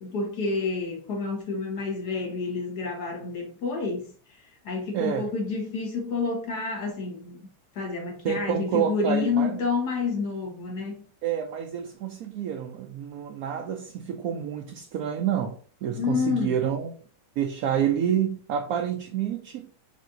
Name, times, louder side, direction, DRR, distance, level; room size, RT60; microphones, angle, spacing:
voice 1, 0.0-7.5 7.8-11.1 16.0-16.5, left 4 dB, 65° left, 1.8 m, -29 dB
voice 2, 4.9-5.3 8.2-9.6 11.2-16.9 17.4-19.7, right 9 dB, 70° right, 1.0 m, -28 dB
5.2 x 2.7 x 3.8 m
omnidirectional pair, 1.8 m